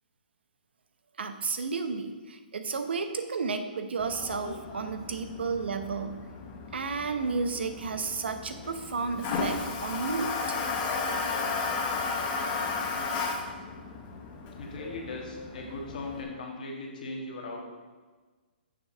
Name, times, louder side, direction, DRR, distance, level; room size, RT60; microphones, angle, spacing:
voice 1, 1.2-6.3 6.7-10.6, right 4 dB, 90° right, 8 dB, 0.7 m, -32 dB
Toilet flush, 4.0-16.2, left 4 dB, 20° left, 0.7 m, -34 dB
voice 2, 14.6-17.6, left 2 dB, 50° left, 0 dB, 1.5 m, -38 dB
6.7 x 3.9 x 6.4 m, 1.4 s
hypercardioid pair, 175°, 6 cm